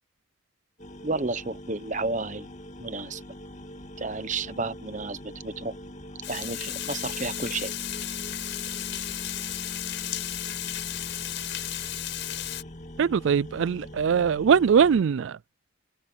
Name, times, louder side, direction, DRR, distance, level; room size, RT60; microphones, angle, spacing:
sound 1, 0.8-15.0, left 1 dB, 35° left, 1.9 m, -42 dB
voice 1, 1.0-2.5 2.8-3.2 4.0-5.7 6.3-7.7, right 3 dB, 35° right, 1.1 m, -31 dB
Water, 6.2-12.6, left 12 dB, 60° left, 6.0 m, -34 dB
voice 2, 13.0-15.4, right 7 dB, 65° right, 0.3 m, -21 dB
head